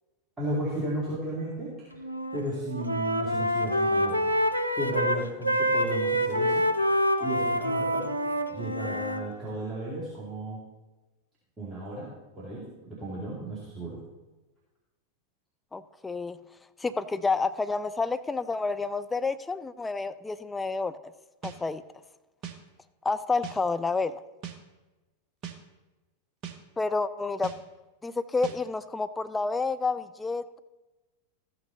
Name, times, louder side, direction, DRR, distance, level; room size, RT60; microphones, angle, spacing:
voice 1, 0.4-2.0 2.3-4.3 4.7-6.7 7.2-8.1 8.5-10.6 11.6-12.1 12.4-14.0, right 1 dB, 15° right, -7 dB, 2.6 m, -34 dB
Wind instrument woodwind instrument, 2.0-2.4 2.7-9.2, equal, 90° right, 0.6 m, -26 dB
voice 2, 15.7-16.4 16.8-20.9 21.4-21.8 23.0-24.2 26.8-27.5 28.0-30.6, left 4 dB, 10° left, 11 dB, 0.4 m, -29 dB
sound 1, 21.4-21.6 22.4-22.6 23.4-23.6 24.4-24.6 25.4-25.6 26.4-26.6 27.4-27.6 28.4-28.6, right 9 dB, 35° right, 1.0 m, -38 dB
14.0 x 6.1 x 4.0 m, 1.1 s
figure-of-eight pair, 90°, 0 cm